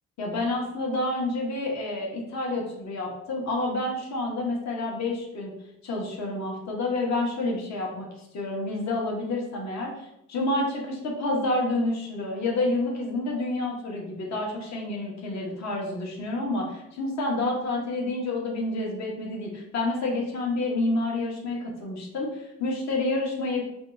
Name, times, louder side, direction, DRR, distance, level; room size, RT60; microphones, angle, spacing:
voice 1, 0.2-5.5 5.8-23.6, left 2 dB, 65° left, -1 dB, 1.0 m, -29 dB
2.7 x 2.3 x 4.0 m, 0.83 s
cardioid pair, 90°, 30 cm